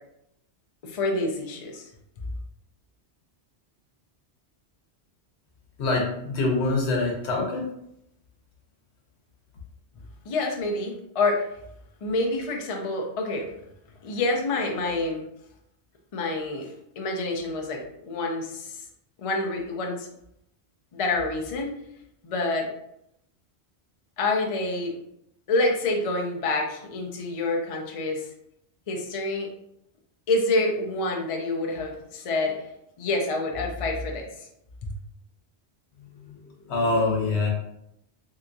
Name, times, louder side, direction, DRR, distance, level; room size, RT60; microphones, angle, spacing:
voice 1, 0.8-1.8 10.3-11.4 12.0-13.5 14.0-15.2 16.1-16.7 17.0-18.8 19.2-20.1 20.9-21.7 22.2-22.7 24.2-24.9 25.5-28.3 28.9-29.5 30.3-32.6 33.0-34.3, left 2 dB, 45° left, 1 dB, 0.5 m, -27 dB
voice 2, 5.8-7.7 36.0-37.5, left 2 dB, 75° left, -1 dB, 1.1 m, -25 dB
3.3 x 2.8 x 2.6 m, 0.77 s
omnidirectional pair, 1.1 m